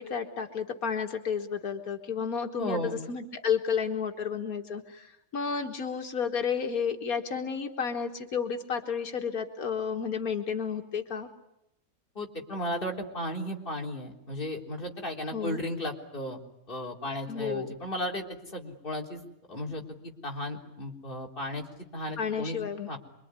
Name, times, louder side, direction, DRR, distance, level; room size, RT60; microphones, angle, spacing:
voice 1, 0.0-2.8 3.1-11.3 15.3-15.6 17.3-17.7 22.2-22.9, left 6 dB, 85° left, 5 dB, 2.0 m, -31 dB
voice 2, 2.6-3.0 12.2-16.4 16.7-18.2 18.5-19.2 19.5-21.7 21.9-22.6 22.9-23.0, left 1 dB, 40° left, 0 dB, 3.9 m, -35 dB
27.0 x 23.0 x 9.7 m, 0.83 s
omnidirectional pair, 1.5 m